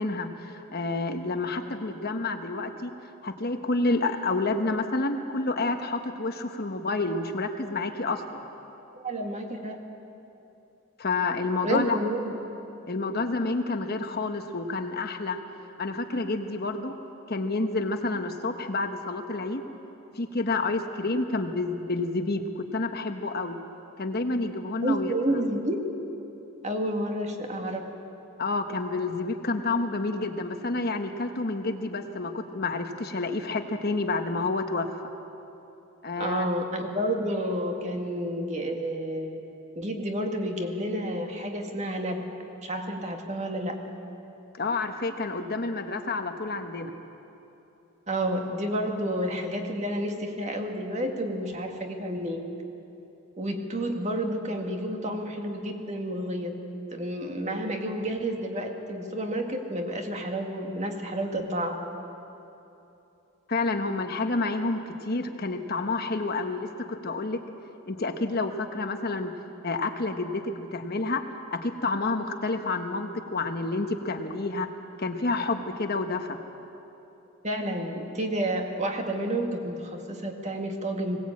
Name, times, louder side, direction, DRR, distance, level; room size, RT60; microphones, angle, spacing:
voice 1, 0.0-2.9 3.2-8.4 11.0-12.0 12.9-15.4 15.8-16.9 17.3-19.6 20.1-23.6 24.0-25.4 28.4-35.0 36.0-36.5 44.6-46.9 63.5-67.4 67.9-69.3 69.6-71.2 71.5-74.7 75.0-76.4, left 3 dB, 50° left, 6 dB, 1.1 m, -29 dB
voice 2, 8.9-9.8 11.6-12.4 24.8-25.8 26.6-27.9 36.2-39.4 39.8-42.3 42.6-43.8 48.1-52.4 53.4-56.5 56.9-61.8 77.4-81.2, right 1 dB, 35° right, 3 dB, 1.9 m, -30 dB
21.0 x 18.5 x 8.6 m, 3.0 s
head